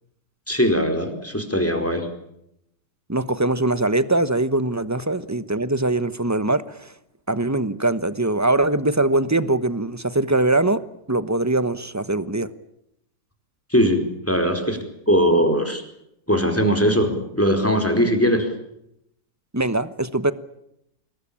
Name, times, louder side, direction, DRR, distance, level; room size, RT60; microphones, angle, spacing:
voice 1, 0.5-2.1 13.7-15.8 16.3-18.5, equal, 10° left, 7 dB, 4.5 m, -20 dB
voice 2, 3.1-6.9 7.3-10.8 11.1-12.5 19.5-20.3, right 2 dB, 10° right, 14 dB, 0.9 m, -22 dB
26.5 x 21.0 x 8.8 m, 0.79 s
omnidirectional pair, 1.7 m